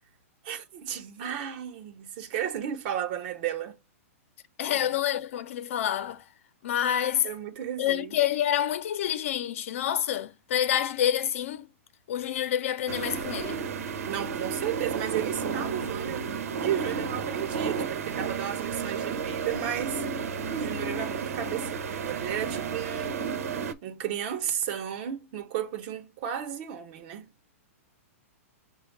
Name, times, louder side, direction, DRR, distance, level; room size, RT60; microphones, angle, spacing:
voice 1, 0.4-3.8 4.7-4.9 7.2-8.2 14.0-20.0 20.5-23.3 23.8-27.3, right 10 dB, 45° right, 1.2 m, -34 dB
voice 2, 4.6-6.2 6.6-7.3 7.8-11.7 12.1-13.6, left 10 dB, 60° left, 0.9 m, -27 dB
sound 1, 12.9-23.7, right 6 dB, 80° right, 1.1 m, -32 dB
6.1 x 2.5 x 3.3 m
hypercardioid pair, 155°, 8 cm